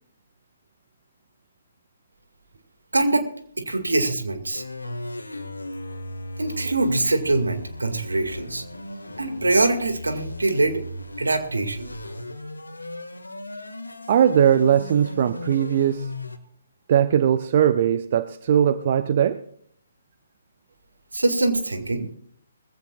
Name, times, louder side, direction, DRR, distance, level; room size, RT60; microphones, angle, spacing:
voice 1, 2.9-3.3 3.6-4.6 6.4-8.6 9.2-10.8 11.2-11.9 21.1-22.1, right 2 dB, 75° right, 8 dB, 2.1 m, -23 dB
sound 1, 4.5-16.4, left 1 dB, 80° left, 1.9 m, -37 dB
voice 2, 14.1-16.1 16.9-19.4, right 9 dB, 45° right, 13 dB, 0.6 m, -19 dB
20.5 x 15.5 x 2.4 m, 0.62 s
figure-of-eight pair, 130°, 0 cm